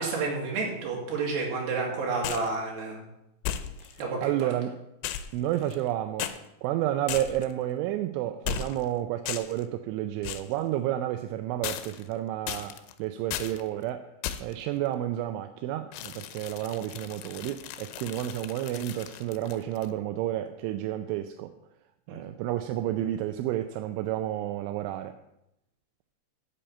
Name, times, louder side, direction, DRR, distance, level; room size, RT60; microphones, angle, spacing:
voice 1, 0.0-3.0 4.0-4.5 22.1-22.2, right 4 dB, 60° right, -1 dB, 4.1 m, -30 dB
sound 1, 2.2-2.6 3.4-4.0 5.0-5.9 6.2-6.4 7.1-7.5 8.5-8.9 9.3-9.6 10.2-10.5 11.6-12.1 12.5-12.9 13.3-13.6 14.2-14.6 15.9-19.9, left 10 dB, 80° left, 3.1 m, -36 dB
voice 2, 3.8-4.8 5.3-6.3 6.6-14.1 14.4-21.5 22.1-25.2, right 13 dB, 85° right, 8 dB, 2.9 m, -31 dB
8.5 x 7.1 x 8.6 m, 0.86 s
omnidirectional pair, 5.8 m